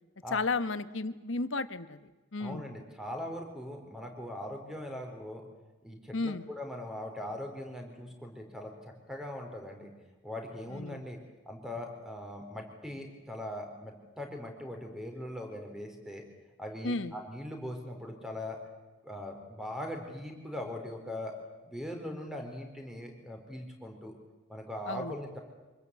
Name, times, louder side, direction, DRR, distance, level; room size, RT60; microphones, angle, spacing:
voice 1, 0.3-2.0 2.3-2.6 6.1-6.4 10.7-11.0 16.8-17.1 24.9-25.1, left 3 dB, 80° left, 12 dB, 1.2 m, -33 dB
voice 2, 2.4-5.4 5.8-9.9 10.2-11.2 11.5-16.2 16.6-18.6 19.0-21.4 21.6-24.1 24.5-25.4, left 1 dB, 5° right, 3 dB, 4.2 m, -40 dB
25.5 x 22.0 x 8.4 m, 1.2 s
head